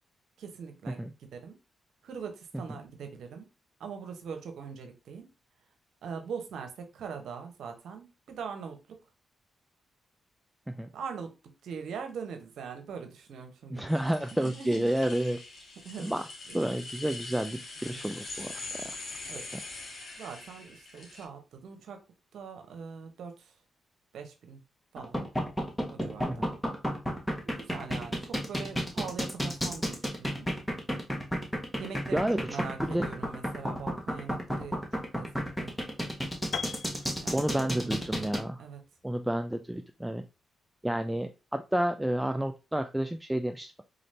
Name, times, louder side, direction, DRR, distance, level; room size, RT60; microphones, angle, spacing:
voice 1, 0.4-1.6 2.0-3.5 3.8-5.3 6.0-9.0 10.9-13.9 14.3-14.9 15.8-16.2 16.5-16.7 17.8-18.0 19.3-19.4 20.2-22.0 22.3-23.6 24.1-24.6 24.9-25.2 25.9-26.5 27.6-30.5 31.8-35.7 37.2-38.3 38.6-38.8, right 6 dB, 75° right, 6 dB, 0.8 m, -42 dB
voice 2, 13.7-15.4 16.0-16.2 16.5-19.0 26.2-26.4 32.1-32.4 32.9-33.0 37.3-38.6 39.0-40.2 40.8-43.8, right 1 dB, 10° right, 7 dB, 0.4 m, -30 dB
sound 1, 13.9-21.2, left 3 dB, 55° left, 1.8 m, -43 dB
sound 2, 25.0-38.4, equal, 10° left, 1.2 m, -31 dB
Piano, 36.5-40.4, left 7 dB, 70° left, 0.4 m, -42 dB
3.9 x 2.6 x 3.2 m, 0.28 s
supercardioid pair, 55°, 0 cm